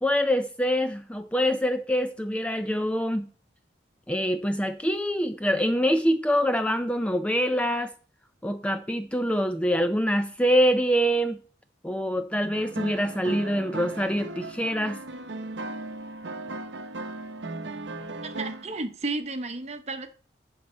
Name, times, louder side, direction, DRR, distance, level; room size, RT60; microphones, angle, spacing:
voice 1, 0.0-3.3 4.1-7.9 8.4-11.4 11.8-15.0, equal, 5° left, 0.4 m, -25 dB
sound 1, 12.5-18.8, right 2 dB, 80° right, 0.8 m, -37 dB
voice 2, 18.2-20.1, right 3 dB, 35° right, 0.9 m, -33 dB
10.5 x 5.5 x 4.3 m
head